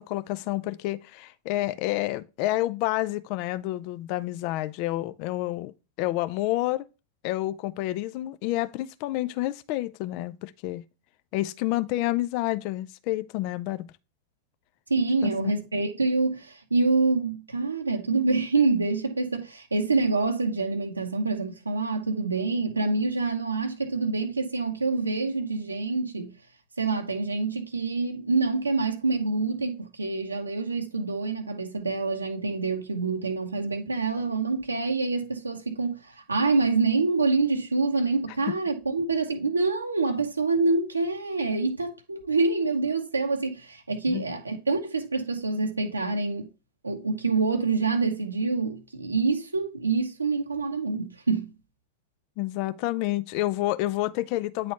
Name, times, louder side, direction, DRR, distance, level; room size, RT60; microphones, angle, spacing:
voice 1, 0.0-5.7 6.0-6.8 7.2-10.8 11.3-13.9 15.2-15.5 44.1-44.3 52.4-54.7, left 16 dB, 45° left, 0.4 m, -29 dB
voice 2, 14.9-26.3 26.8-46.5 46.8-51.5, right 3 dB, 80° right, 0.7 m, -26 dB
9.2 x 4.1 x 2.8 m
figure-of-eight pair, 90°, 0 cm